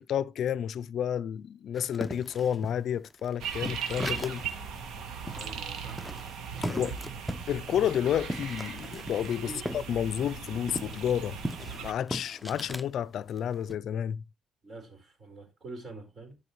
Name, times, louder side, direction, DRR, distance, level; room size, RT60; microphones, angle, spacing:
voice 1, 0.0-4.5 6.7-6.9 7.5-14.2, left 9 dB, 70° left, 0.4 m, -31 dB
sound 1, 1.8-4.6 4.9-5.0 5.3-9.9 10.2-12.9 13.4-13.8, equal, 5° left, 0.6 m, -38 dB
sound 2, 3.4-11.9, right 7 dB, 80° right, 1.4 m, -38 dB
voice 2, 5.3-6.1 6.5-6.9 9.3-9.8 14.6-16.4, right 2 dB, 40° right, 4.5 m, -45 dB
12.5 x 4.9 x 3.1 m
cardioid pair, 90°, 0 cm